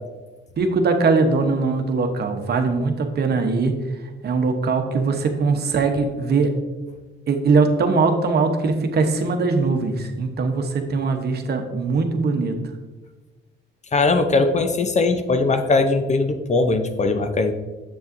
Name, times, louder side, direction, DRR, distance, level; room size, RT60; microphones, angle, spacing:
voice 1, 0.6-3.7 4.2-6.5 7.3-12.6, right 4 dB, 55° right, 5 dB, 0.9 m, -21 dB
voice 2, 13.9-17.5, left 3 dB, 35° left, 8 dB, 0.7 m, -20 dB
7.4 x 7.0 x 2.6 m, 1.2 s
cardioid pair, 90°, 20 cm